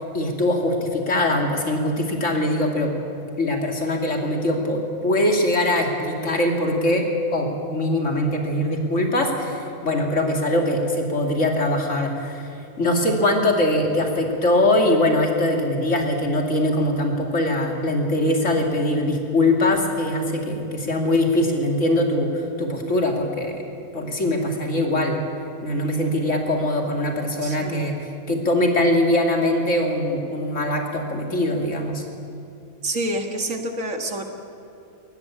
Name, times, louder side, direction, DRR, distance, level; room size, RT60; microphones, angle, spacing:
voice 1, 0.1-2.9 3.4-12.5 12.8-23.6 23.9-25.2 25.6-28.0 28.3-32.0, left 1 dB, 55° left, 2 dB, 2.9 m, -22 dB
voice 2, 27.4-27.9 32.8-34.2, right 1 dB, 60° right, 4 dB, 2.2 m, -28 dB
22.0 x 20.0 x 8.4 m, 2.7 s
omnidirectional pair, 1.5 m